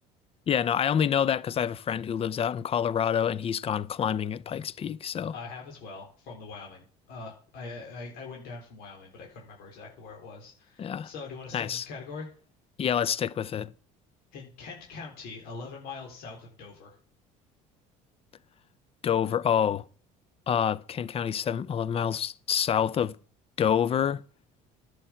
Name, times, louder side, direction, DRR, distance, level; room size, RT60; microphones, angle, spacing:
voice 1, 0.5-5.3 10.8-11.1 11.5-11.8 12.8-13.7 19.0-19.8 20.5-23.2 23.6-24.2, left 8 dB, 35° left, 0.6 m, -27 dB
voice 2, 5.3-12.3 14.3-17.0, left 4 dB, 70° left, 3.9 m, -42 dB
11.0 x 8.0 x 5.8 m
supercardioid pair, 95°, 16 cm